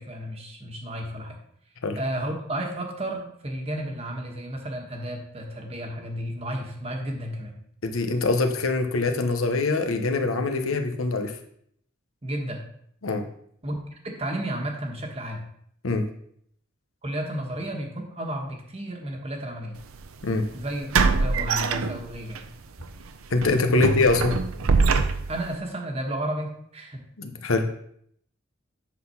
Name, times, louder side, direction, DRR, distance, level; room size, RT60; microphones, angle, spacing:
voice 1, 0.0-1.4 2.0-7.6 12.2-12.6 13.6-13.8 14.0-15.4 17.0-19.8 20.5-20.9 21.2-22.4 23.7-23.9 25.3-27.0, right 1 dB, 30° right, 2 dB, 1.2 m, -32 dB
voice 2, 7.8-11.3 13.0-13.2 15.8-16.0 20.2-20.4 23.3-24.3 27.2-27.6, left 3 dB, 85° left, 5 dB, 0.9 m, -23 dB
sound 1, 19.8-20.0 20.9-22.4 22.8-23.0 23.4-25.5, right 4 dB, 90° right, 0.6 m, -23 dB
8.3 x 3.9 x 5.7 m, 0.67 s
head